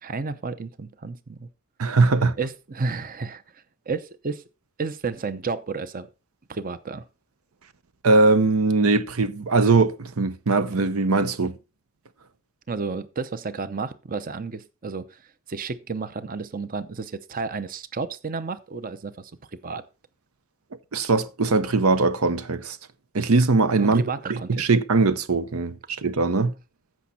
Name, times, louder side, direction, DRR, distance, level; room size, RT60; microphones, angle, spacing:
voice 1, 0.0-1.5 2.4-3.4 3.9-4.4 4.8-6.1 6.5-7.0 12.7-15.2 15.5-19.3 19.6-19.8 23.7-24.7, right 4 dB, 40° right, 0.7 m, -31 dB
voice 2, 1.8-2.4 8.0-11.6 20.9-22.8 23.1-24.0 24.3-26.5, right 3 dB, 80° right, 0.8 m, -21 dB
14.5 x 6.1 x 4.2 m
head